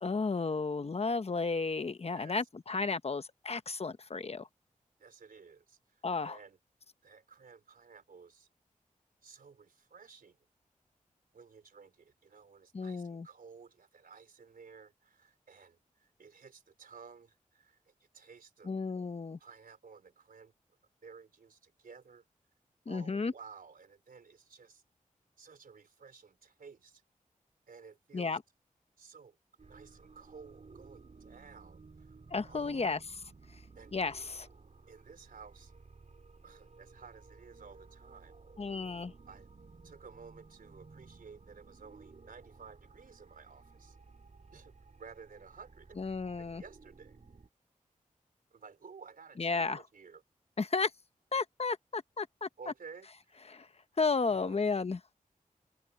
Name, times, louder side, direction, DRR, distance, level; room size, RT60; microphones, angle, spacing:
voice 1, 0.0-4.5 6.0-6.4 12.7-13.3 18.6-19.4 22.9-23.3 28.1-28.4 32.3-33.0 33.9-34.5 38.6-39.1 46.0-46.6 49.4-49.8 50.6-50.9 51.3-52.7 53.5-53.7 54.0-55.0, left 4 dB, 45° left, 1.0 m, -33 dB
voice 2, 2.1-2.4 5.0-6.6 7.0-8.5 9.2-10.4 11.3-18.7 19.4-20.5 21.0-22.2 22.9-24.8 25.4-27.0 27.7-28.4 29.0-29.4 29.7-32.2 32.5-33.0 33.7-34.0 34.9-35.7 36.4-38.4 39.3-39.5 39.8-44.0 44.5-44.7 45.0-46.0 46.4-47.2 48.5-50.2 52.6-53.1 54.2-54.6, right 5 dB, 80° right, 4.0 m, -54 dB
sound 1, 29.6-47.5, right 4 dB, 55° right, 3.3 m, -56 dB
cardioid pair, 60°, 14 cm